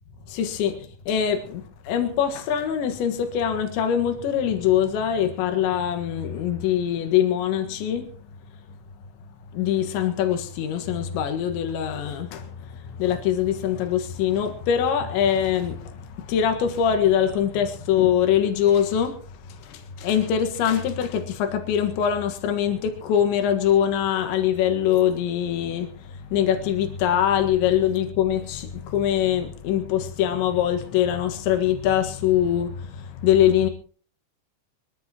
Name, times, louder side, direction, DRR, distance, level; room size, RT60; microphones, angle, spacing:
voice 1, 0.3-8.1 9.5-33.7, left 9 dB, 80° left, 3.9 m, -23 dB
23.5 x 14.5 x 2.9 m
omnidirectional pair, 5.2 m